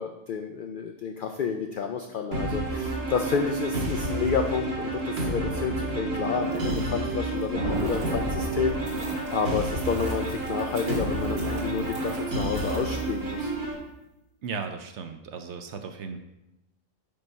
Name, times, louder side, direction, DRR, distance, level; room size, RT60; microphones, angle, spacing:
voice 1, 0.0-13.5, left 6 dB, 75° left, 5 dB, 0.4 m, -30 dB
sound 1, 2.3-13.7, right 2 dB, 50° right, 1.4 m, -30 dB
sound 2, 6.3-13.5 13.7-13.8, right 1 dB, 80° right, 1.9 m, -44 dB
sound 3, 7.5-9.6, right 1 dB, 30° right, 0.7 m, -33 dB
voice 2, 14.4-16.2, right 5 dB, 65° right, 7 dB, 0.8 m, -36 dB
5.4 x 5.2 x 4.4 m, 0.93 s
omnidirectional pair, 1.4 m